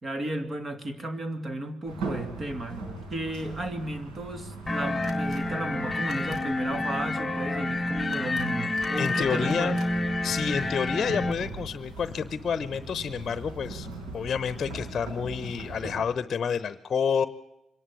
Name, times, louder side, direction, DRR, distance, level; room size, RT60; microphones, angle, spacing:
voice 1, 0.0-2.8 3.1-9.8, right 1 dB, 35° right, 9 dB, 2.5 m, -34 dB
sound 1, 1.8-16.0, right 3 dB, 85° right, 5.7 m, -40 dB
sound 2, 4.7-11.3, left 2 dB, 20° left, 1.1 m, -29 dB
sound 3, 5.0-5.4 6.0-6.4 8.0-8.5 8.8-9.2 9.4-9.9, right 2 dB, 60° right, 4.0 m, -47 dB
voice 2, 9.0-9.8 10.2-13.9 14.1-17.3, left 6 dB, 45° left, 15 dB, 0.9 m, -29 dB
25.0 x 11.0 x 9.8 m, 0.89 s
cardioid pair, 90°, 0 cm